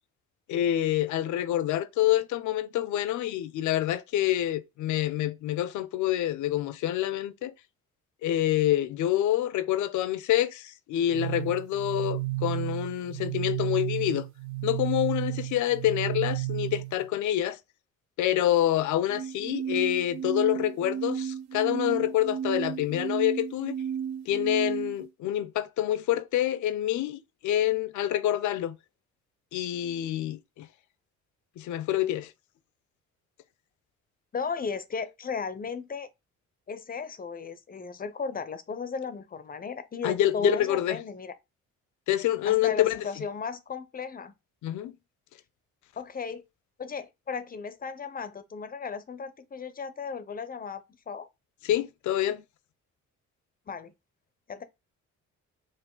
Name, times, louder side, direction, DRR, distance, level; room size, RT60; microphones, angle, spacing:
voice 1, 0.5-7.5 8.2-14.3 14.6-17.6 18.2-23.7 24.3-28.8 29.5-30.7 31.6-32.3 40.0-41.0 42.1-43.0 44.6-44.9 51.6-52.4, left 12 dB, 75° left, 0.5 m, -27 dB
sound 1, 11.1-17.1 19.1-25.1, right 11 dB, 65° right, 0.5 m, -33 dB
voice 2, 34.3-36.1 36.7-41.4 42.4-44.3 46.0-46.4 46.8-51.3 53.7-53.9 54.5-54.6, left 5 dB, 30° left, 0.5 m, -35 dB
4.7 x 2.5 x 3.7 m
cardioid pair, 90°, 30 cm